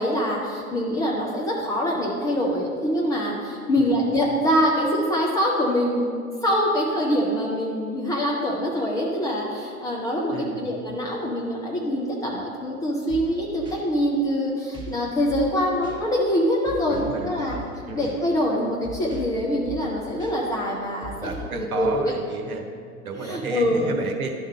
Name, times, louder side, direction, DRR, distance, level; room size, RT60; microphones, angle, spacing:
voice 1, 0.0-6.1 6.4-17.5 17.9-21.3 21.5-22.0 23.2-24.0, equal, 10° left, -3 dB, 0.3 m, -24 dB
voice 2, 10.3-10.7 16.9-18.1 21.2-22.6 23.0-24.3, right 4 dB, 70° right, 4 dB, 1.1 m, -32 dB
sound 1, 13.1-13.4 13.7-13.8 14.7-15.0 15.3-15.6 15.8-16.0 16.6-17.2 17.5-17.8 18.0-18.1 18.8-19.4 19.6-19.9 20.2-20.3 21.0-21.6, equal, 10° right, 1.8 m, -38 dB
11.0 x 3.8 x 5.0 m, 2.2 s
figure-of-eight pair, 90°, 44 cm